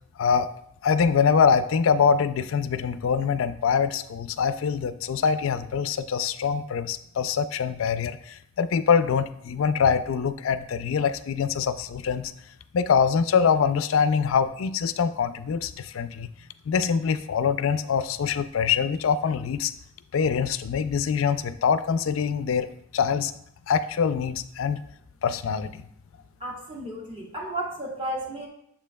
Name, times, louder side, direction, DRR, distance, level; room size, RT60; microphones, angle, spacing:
voice 1, 0.8-12.3 12.7-16.3 16.7-19.7 20.1-23.3 23.7-24.8 25.2-25.8, left 6 dB, 70° left, 12 dB, 0.4 m, -24 dB
voice 2, 26.4-28.5, right 1 dB, 25° right, -3 dB, 1.6 m, -33 dB
7.3 x 7.0 x 2.2 m, 0.72 s
head